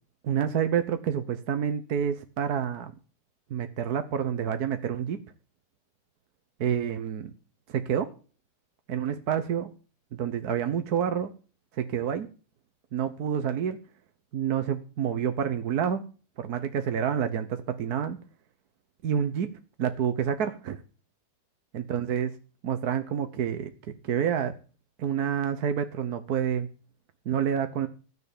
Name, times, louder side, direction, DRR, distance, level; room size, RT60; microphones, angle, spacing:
voice 1, 0.2-2.9 3.5-5.2 6.6-7.3 7.7-8.1 8.9-9.7 10.1-11.3 11.7-12.3 12.9-13.8 14.3-16.1 16.4-18.2 19.0-19.5 19.8-20.8 21.7-22.3 22.6-24.5 25.0-26.7 27.3-27.9, right 8 dB, 55° right, 9 dB, 1.2 m, -28 dB
14.5 x 6.8 x 8.5 m, 0.37 s
omnidirectional pair, 2.4 m